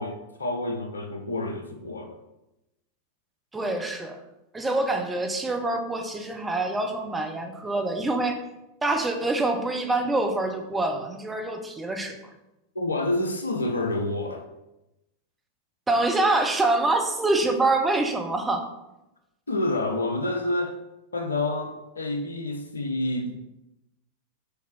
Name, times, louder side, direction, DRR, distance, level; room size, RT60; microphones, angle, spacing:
voice 1, 0.0-2.2 12.7-14.5 19.5-20.8 21.1-23.3, left 2 dB, 75° left, 5 dB, 0.9 m, -28 dB
voice 2, 3.5-4.2 4.5-8.4 8.8-12.2 15.9-18.6, right 2 dB, 10° right, 3 dB, 1.0 m, -25 dB
6.9 x 4.7 x 4.5 m, 0.92 s
figure-of-eight pair, 90°, 0 cm